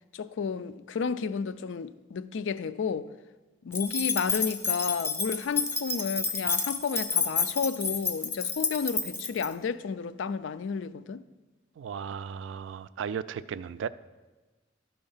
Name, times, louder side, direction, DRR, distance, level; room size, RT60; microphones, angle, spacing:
voice 1, 0.1-3.1 3.6-11.2, left 5 dB, 80° left, 0.4 m, -32 dB
sound 1, 3.7-9.5, left 5 dB, 15° left, 0.4 m, -30 dB
voice 2, 11.8-13.9, right 7 dB, 80° right, 0.3 m, -35 dB
12.0 x 4.4 x 5.5 m
head